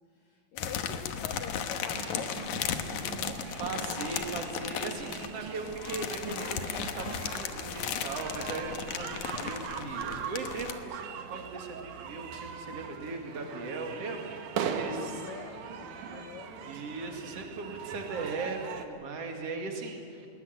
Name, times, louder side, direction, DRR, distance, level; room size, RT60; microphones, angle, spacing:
voice 1, 0.0-3.4 14.9-16.8, left 8 dB, 85° left, 7 dB, 1.5 m, -46 dB
sound 1, 0.6-10.7, left 8 dB, 65° left, 2.1 m, -36 dB
sound 2, 1.9-18.9, right 7 dB, 65° right, 2.3 m, -40 dB
voice 2, 3.6-14.3 14.7-15.1 16.6-20.3, right 3 dB, 45° right, 2 dB, 2.9 m, -38 dB
21.0 x 20.0 x 9.0 m, 2.5 s
omnidirectional pair, 4.5 m